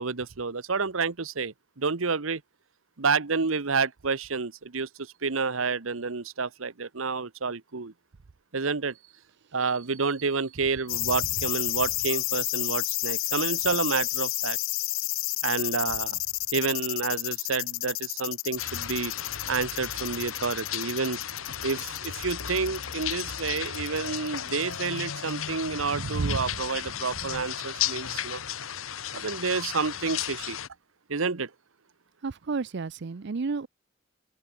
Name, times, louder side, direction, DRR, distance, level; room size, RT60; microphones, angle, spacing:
voice 1, 0.0-2.4 3.0-7.9 8.5-9.0 9.5-14.6 15.4-16.2 16.5-19.1 19.5-21.2 21.6-28.4 29.1-30.6 31.1-31.5, right 4 dB, 80° right, 1.1 m, -29 dB
sound 1, 10.9-25.0 25.3-25.4, left 22 dB, 65° left, 0.4 m, -30 dB
sound 2, 18.6-30.7, left 9 dB, 90° left, 1.4 m, -35 dB
voice 2, 25.8-26.4 32.2-33.7, right 4 dB, 60° right, 0.5 m, -31 dB
open air
head